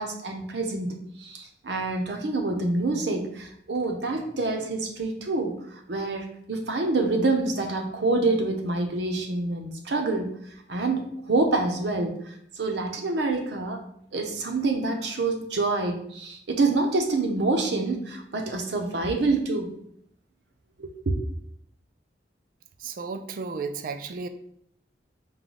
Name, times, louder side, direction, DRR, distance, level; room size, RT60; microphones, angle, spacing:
voice 1, 0.0-10.4 10.7-13.8 14.1-19.7 20.8-21.2, right 3 dB, 70° right, 4 dB, 0.7 m, -27 dB
voice 2, 22.8-24.3, right 4 dB, 50° right, 9 dB, 0.3 m, -33 dB
4.8 x 2.2 x 3.8 m, 0.69 s
head